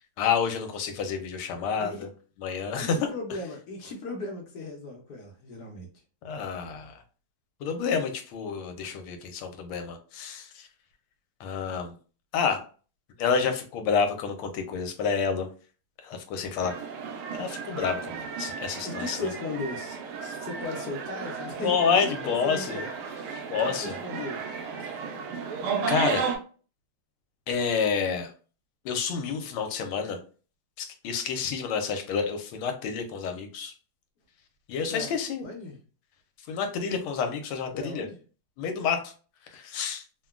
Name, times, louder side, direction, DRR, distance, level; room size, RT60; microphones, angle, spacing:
voice 1, 0.2-2.1 2.4-3.0 6.2-7.0 7.6-10.7 11.4-11.9 12.3-12.6 13.2-15.5 16.0-16.7 17.3-19.3 21.6-22.8 23.5-24.0 24.8-24.9 25.9-26.2 27.5-28.3 28.8-30.2 30.8-33.7 34.7-35.5 36.5-38.1 38.6-39.1 39.5-40.0, left 6 dB, 85° left, 6 dB, 1.5 m, -29 dB
voice 2, 2.8-5.9 18.8-24.4 34.9-35.8 37.7-38.2, left 2 dB, 65° left, 1 dB, 1.0 m, -37 dB
sound 1, 16.6-26.4, right 5 dB, 85° right, 1.5 m, -34 dB
3.7 x 2.2 x 2.3 m, 0.38 s
omnidirectional pair, 2.3 m